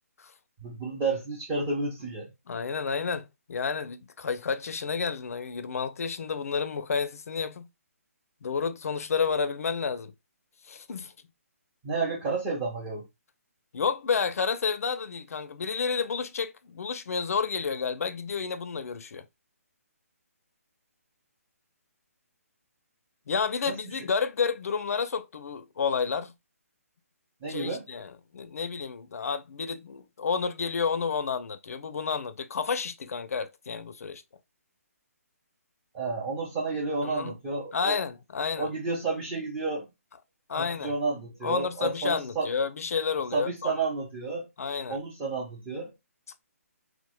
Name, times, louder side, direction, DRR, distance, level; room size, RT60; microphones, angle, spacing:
voice 1, 0.6-2.3 11.8-13.0 23.6-23.8 27.4-27.8 35.9-38.0 38.6-39.9 40.5-42.5 43.3-44.5 44.9-45.9, right 3 dB, 20° right, 0.7 m, -31 dB
voice 2, 2.5-7.7 8.4-10.1 10.7-11.1 13.7-19.2 23.3-26.3 27.5-34.2 37.0-37.3 37.7-38.7 40.5-40.9 41.4-43.8 44.6-45.0, left 5 dB, 70° left, 0.4 m, -30 dB
2.9 x 2.1 x 2.9 m
hypercardioid pair, 150°, 8 cm